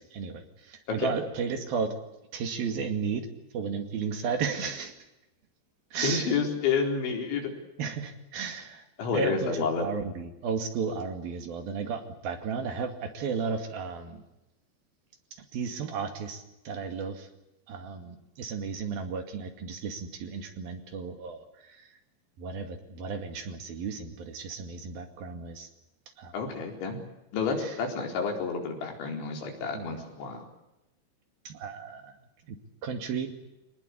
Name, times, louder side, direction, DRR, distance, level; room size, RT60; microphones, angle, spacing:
voice 1, 0.1-1.9 2.3-3.3 3.5-4.9 5.9-6.4 7.8-8.8 9.1-14.2 15.5-17.3 17.7-21.8 22.4-25.7 26.2-26.3 27.6-27.8 29.7-30.0 31.5-32.2 32.5-32.6 32.8-33.3, right 5 dB, 60° right, 6 dB, 3.9 m, -34 dB
voice 2, 6.0-7.5 9.0-9.9 26.3-27.0 27.3-30.5, left 5 dB, 90° left, 2 dB, 6.7 m, -29 dB
25.5 x 19.5 x 8.4 m, 0.94 s
omnidirectional pair, 5.1 m